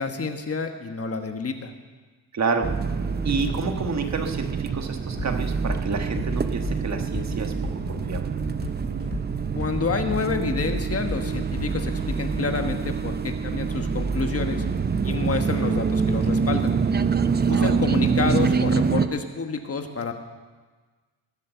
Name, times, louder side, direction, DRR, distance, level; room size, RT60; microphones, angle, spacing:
voice 1, 0.0-1.7 9.5-14.6 15.0-16.7 17.5-20.1, left 4 dB, 40° left, 6 dB, 1.4 m, -29 dB
voice 2, 2.3-2.7 3.2-7.5 7.9-8.2 17.5-18.0, right 4 dB, 50° right, 4 dB, 1.4 m, -29 dB
sound 1, 2.6-19.1, right 5 dB, 30° right, 0.6 m, -25 dB
sound 2, 5.2-13.0, left 4 dB, 70° left, 2.2 m, -36 dB
19.5 x 8.4 x 7.0 m, 1.3 s
wide cardioid pair, 125°, 36 cm